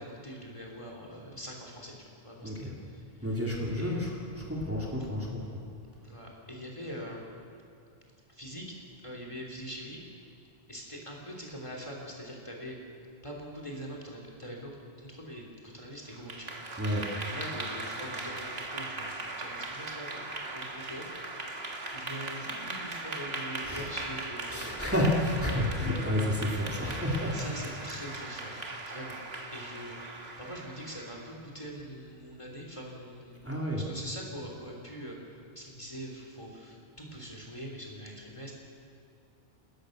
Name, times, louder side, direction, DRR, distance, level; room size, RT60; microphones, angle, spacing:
voice 1, 0.0-1.9 2.2-3.0 3.8-4.1 6.0-7.3 8.3-8.6 9.0-10.0 10.7-12.8 13.2-14.7 15.0-16.5 17.3-24.9 27.3-29.2 29.5-30.0 30.4-33.4 33.9-38.5, equal, 30° left, -1 dB, 3.3 m, -43 dB
voice 2, 2.4-2.7 3.2-5.6 16.8-17.0 23.6-24.1 24.5-27.4 33.4-33.8, left 1 dB, 10° right, -3 dB, 3.1 m, -30 dB
Clapping / Applause, 16.1-31.3, right 2 dB, 75° right, 2.1 m, -39 dB
29.0 x 14.0 x 6.6 m, 2.5 s
omnidirectional pair, 1.1 m